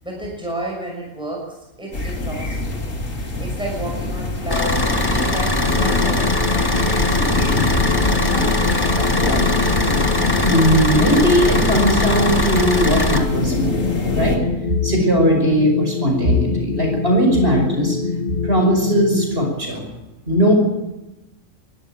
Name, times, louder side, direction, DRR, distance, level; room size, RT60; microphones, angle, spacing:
voice 1, 0.0-9.5, right 1 dB, 5° right, -2 dB, 6.2 m, -32 dB
sound 1, 1.9-14.4, left 2 dB, 90° left, 3.1 m, -24 dB
Car / Idling, 4.5-13.2, left 1 dB, 20° left, 1.7 m, -21 dB
sound 2, 5.7-19.5, left 4 dB, 45° left, 1.3 m, -25 dB
voice 2, 10.4-13.8 14.2-14.4 14.8-18.0 18.4-19.8 20.3-20.5, equal, 50° right, 2 dB, 5.8 m, -18 dB
23.0 x 13.5 x 9.1 m, 0.99 s
omnidirectional pair, 1.3 m